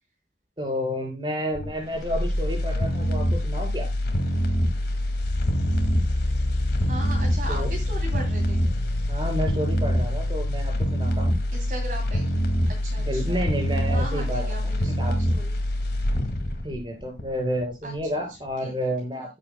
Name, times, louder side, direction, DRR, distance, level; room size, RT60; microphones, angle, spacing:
voice 1, 0.6-3.9 7.5-7.7 9.1-11.4 13.0-15.1 16.6-19.4, equal, 25° right, 1 dB, 4.5 m, -30 dB
sound 1, 1.5-17.6 18.0-18.1, equal, 65° left, 2.0 m, -25 dB
sound 2, 5.2-11.7, left 2 dB, 85° left, 0.9 m, -32 dB
voice 2, 6.9-8.6 11.5-12.3 12.8-13.4 13.9-15.6 17.8-18.2 18.6-18.9, right 1 dB, 50° right, -1 dB, 2.9 m, -38 dB
17.0 x 7.5 x 2.2 m, 0.23 s
head